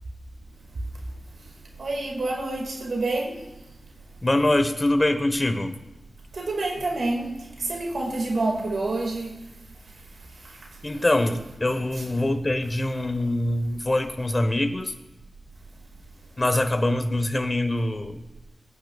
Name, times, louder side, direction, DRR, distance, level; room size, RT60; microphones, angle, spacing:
voice 1, 1.8-3.4 6.3-9.4 10.4-10.6, right 2 dB, 75° right, 0 dB, 2.2 m, -28 dB
voice 2, 4.2-5.8 10.8-14.9 16.4-18.2, left 1 dB, 25° left, 7 dB, 1.2 m, -24 dB
23.5 x 9.4 x 2.4 m, 1.0 s
wide cardioid pair, 100°, 0 cm